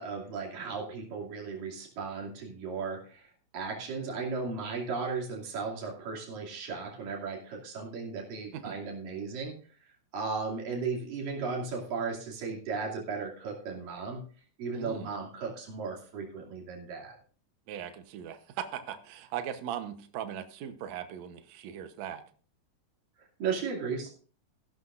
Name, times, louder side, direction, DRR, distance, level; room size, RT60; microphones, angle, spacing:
voice 1, 0.0-9.5 10.1-14.2 14.6-17.2 23.4-24.1, right 4 dB, 85° right, -1 dB, 4.4 m, -36 dB
voice 2, 14.7-15.1 17.7-22.2, right 9 dB, 65° right, 9 dB, 2.1 m, -39 dB
15.5 x 11.5 x 2.5 m, 0.41 s
omnidirectional pair, 3.8 m